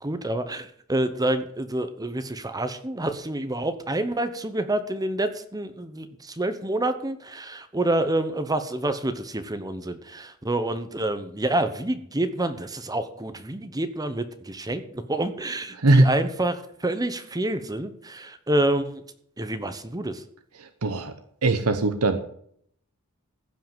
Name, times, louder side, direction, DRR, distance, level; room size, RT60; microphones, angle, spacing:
voice 1, 0.0-19.0 19.4-20.2, right 1 dB, 15° right, 9 dB, 0.9 m, -28 dB
voice 2, 15.7-16.1 20.6-21.1 21.4-22.2, right 2 dB, 85° right, 9 dB, 1.1 m, -20 dB
16.0 x 5.6 x 7.5 m, 0.66 s
head